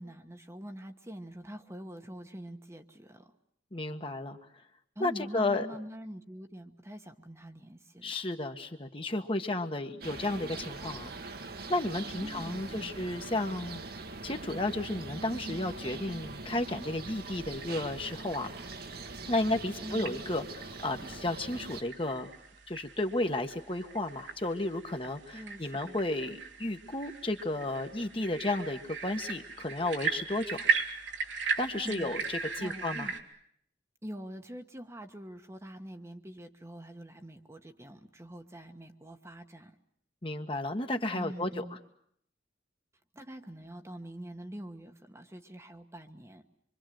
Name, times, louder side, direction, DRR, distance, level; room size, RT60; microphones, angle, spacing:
voice 1, 0.0-3.3 4.9-8.2 12.2-13.0 19.8-20.2 25.3-26.0 31.8-33.1 34.0-39.8 41.1-41.8 43.1-46.4, equal, 15° right, 5 dB, 1.3 m, -45 dB
voice 2, 3.7-4.4 5.0-5.7 8.0-11.1 11.7-13.8 14.2-18.5 19.2-22.3 22.7-30.7 31.6-33.1 40.2-41.6, left 2 dB, 30° left, 6 dB, 1.6 m, -33 dB
sound 1, 10.0-21.8, right 3 dB, 55° right, 1.7 m, -42 dB
sound 2, 16.8-33.2, right 5 dB, 90° right, 3.1 m, -38 dB
26.0 x 25.0 x 7.8 m, 0.69 s
head